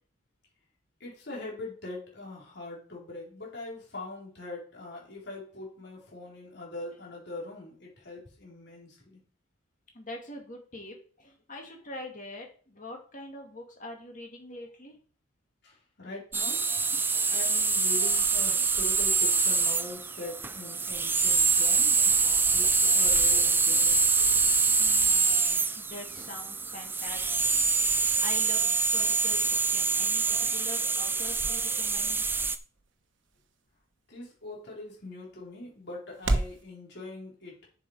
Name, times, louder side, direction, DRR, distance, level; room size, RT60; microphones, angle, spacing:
voice 1, 1.0-9.2 15.6-16.6 17.3-24.1 34.1-37.5, left 2 dB, 55° left, -3 dB, 3.9 m, -42 dB
voice 2, 9.9-15.0 24.8-27.6 28.2-32.2, left 2 dB, 40° left, 2 dB, 2.3 m, -44 dB
sound 1, 16.3-32.6, right 4 dB, 10° right, 0.3 m, -25 dB
sound 2, 30.4-36.6, right 2 dB, 60° right, 1.1 m, -37 dB
7.3 x 7.0 x 4.9 m, 0.43 s
head